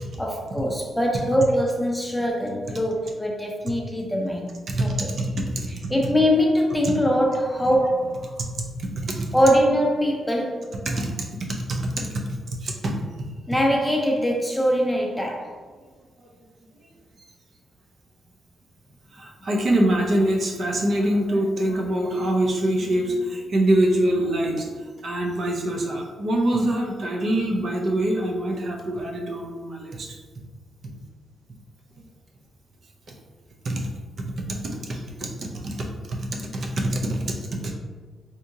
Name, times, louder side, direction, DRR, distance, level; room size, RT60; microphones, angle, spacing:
voice 1, 0.2-5.1 5.9-8.4 9.3-10.7 13.5-15.5, equal, 5° left, 0 dB, 0.5 m, -22 dB
voice 2, 4.7-5.9 8.8-9.3 10.9-12.2 12.6-12.9 13.2-13.3 19.1-24.7 25.0-30.1 33.6-33.9 34.2-37.7, right 1 dB, 50° right, 0 dB, 0.5 m, -25 dB
3.6 x 2.7 x 2.7 m, 1.4 s
cardioid pair, 100°, 0 cm